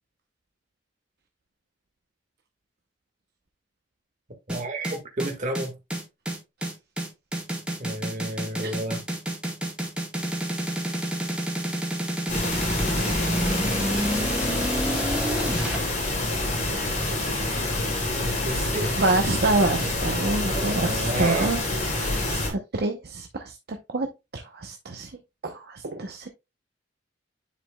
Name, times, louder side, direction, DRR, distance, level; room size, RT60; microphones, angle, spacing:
sound 1, 4.5-15.8, right 1 dB, 5° right, 2.2 m, -29 dB
voice 1, 4.5-5.7 7.8-9.0 18.2-19.0 20.3-21.5, right 1 dB, 45° right, 1.7 m, -31 dB
sound 2, 12.3-22.5, left 2 dB, 45° left, 3.0 m, -27 dB
voice 2, 19.0-21.6 21.9-25.1 25.4-26.3, right 2 dB, 60° right, 0.8 m, -27 dB
10.0 x 5.0 x 2.2 m
head